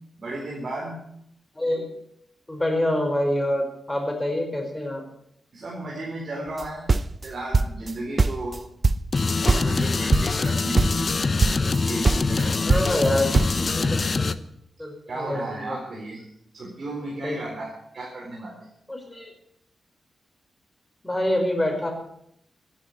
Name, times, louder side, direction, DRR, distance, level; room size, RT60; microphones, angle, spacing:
voice 1, 0.2-1.0 5.5-6.9 7.2-8.6 9.3-11.3 11.8-13.0 13.7-14.2 15.1-16.2 16.5-18.6, right 2 dB, 55° right, -2 dB, 4.2 m, -34 dB
voice 2, 1.5-1.9 2.5-5.0 12.6-14.0 14.8-15.8 17.2-17.4 18.9-19.3 21.0-21.9, left 1 dB, 15° left, 3 dB, 5.0 m, -26 dB
sound 1, 6.6-9.2 9.5-9.8 10.1-10.5 10.8-11.1 11.4-11.8 12.1-13.6, right 3 dB, 40° right, 0.6 m, -21 dB
sound 2, 9.1-14.4, left 4 dB, 45° left, 0.8 m, -24 dB
15.0 x 10.0 x 8.3 m, 0.73 s
cardioid pair, 75°, 0 cm